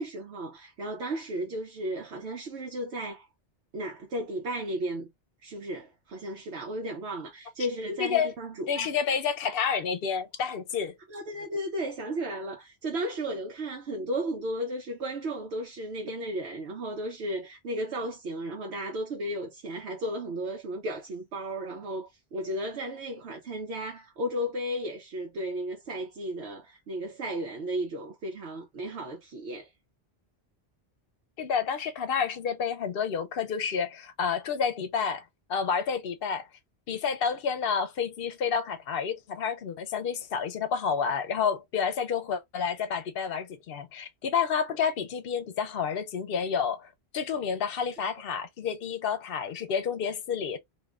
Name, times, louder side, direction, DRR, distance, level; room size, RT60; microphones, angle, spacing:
voice 1, 0.0-3.3 3.7-5.1 5.4-8.9 11.1-29.7, right 1 dB, 80° right, 1.0 m, -34 dB
voice 2, 8.0-8.3 8.7-11.0 31.4-35.2 35.5-36.5 36.9-50.6, left 6 dB, 65° left, 0.7 m, -29 dB
2.6 x 2.4 x 3.2 m
omnidirectional pair, 1.1 m